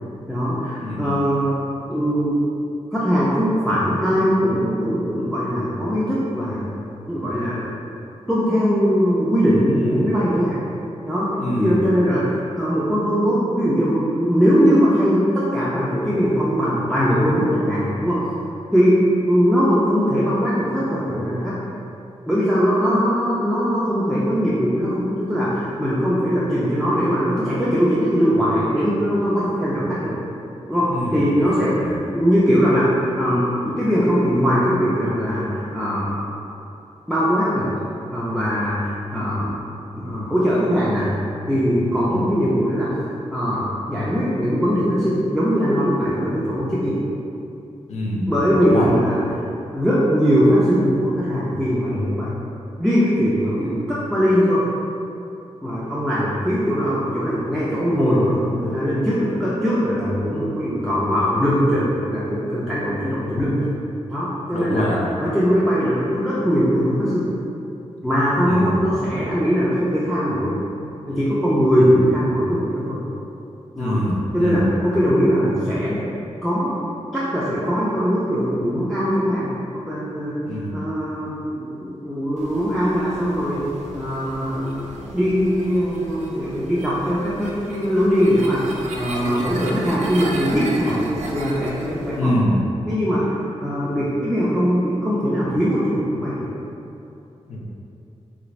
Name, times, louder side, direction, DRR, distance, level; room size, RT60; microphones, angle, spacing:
voice 1, 0.3-1.6 1.9-2.5 2.9-6.6 7.1-7.6 8.3-10.6 11.0-18.2 18.7-19.0 19.3-21.5 22.3-30.1 30.7-32.9 33.1-36.2 37.1-37.7 38.1-39.5 40.0-41.1 41.5-42.9 43.3-47.0 48.3-49.2 49.7-52.3 52.8-54.6 55.6-63.7 64.1-67.3 68.0-70.6 71.1-73.0 73.8-74.1 74.3-76.0 76.4-76.8 77.1-79.5 79.9-88.6 88.9-91.0 91.3-92.4 92.9-93.2 93.6-96.5, equal, ahead, -9 dB, 0.3 m, -20 dB
voice 2, 9.7-10.1 11.4-11.8 30.9-32.0 42.1-42.2 47.9-48.2 48.7-48.9 64.5-65.0 68.5-68.7 71.8-71.9 73.8-74.6 80.4-80.7 92.1-92.5 97.5-97.6, left 1 dB, 75° left, -3 dB, 0.5 m, -25 dB
sound 1, 82.4-92.2, right 2 dB, 90° right, 0.4 m, -35 dB
3.2 x 2.5 x 3.0 m, 2.7 s
wide cardioid pair, 175°, 12 cm